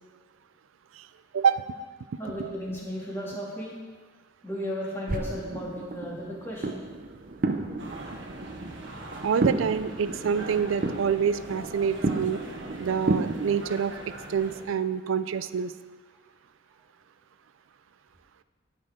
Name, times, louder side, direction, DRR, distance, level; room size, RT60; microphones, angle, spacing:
voice 1, 2.2-3.7 4.4-6.8, equal, 15° left, -6 dB, 2.6 m, -35 dB
sound 1, 5.1-13.4, right 2 dB, 45° right, 0.6 m, -32 dB
sound 2, 7.8-14.6, right 1 dB, 75° right, 1.4 m, -42 dB
voice 2, 9.2-12.4 12.8-13.9 14.3-15.7, right 7 dB, 90° right, 13 dB, 0.4 m, -26 dB
18.0 x 6.6 x 3.7 m, 1.4 s
head